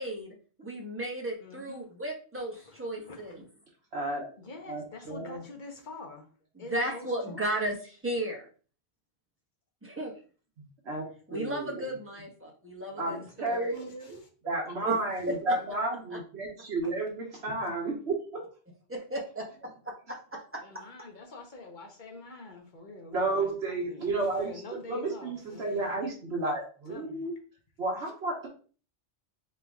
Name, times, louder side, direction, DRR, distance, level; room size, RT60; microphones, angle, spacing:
voice 1, 0.0-3.4 6.6-8.5 9.8-10.2 11.3-13.8 14.4-15.0 15.3-15.6 18.9-19.5 19.8-20.8, right 1 dB, 10° right, 1.0 m, -35 dB
voice 2, 1.4-1.9 2.6-3.4 4.4-6.3 6.6-7.4 12.8-13.3 13.7-14.3 15.2-15.3 20.6-25.9 26.9-27.3, left 3 dB, 50° left, 1.0 m, -46 dB
voice 3, 3.9-4.2 4.7-5.4 10.8-11.0 11.3-11.8 13.0-18.5 23.1-24.5 24.9-27.3 27.8-28.5, right 2 dB, 70° right, 1.2 m, -32 dB
3.8 x 3.3 x 3.5 m
omnidirectional pair, 1.1 m